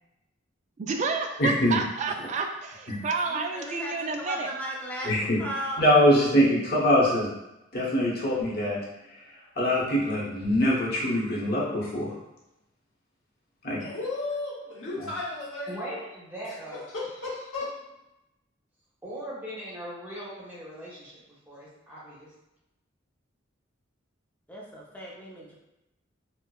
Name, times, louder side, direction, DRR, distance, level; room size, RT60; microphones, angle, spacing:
voice 1, 0.8-2.4 3.0-4.5, right 4 dB, 40° right, 4 dB, 0.3 m, -29 dB
voice 2, 1.4-1.8 5.0-5.4 5.8-7.3 7.7-8.8 9.6-12.1 13.6-13.8 15.0-15.1, equal, 55° left, -5 dB, 0.9 m, -23 dB
voice 3, 3.3-5.8 24.5-25.6, right 1 dB, 10° left, -4 dB, 0.6 m, -36 dB
voice 4, 13.8-15.7 16.9-17.7, left 3 dB, 90° left, -6 dB, 0.8 m, -34 dB
voice 5, 15.7-16.8 19.0-22.3, right 1 dB, 10° right, -8 dB, 1.1 m, -39 dB
4.4 x 2.0 x 2.3 m, 0.93 s
head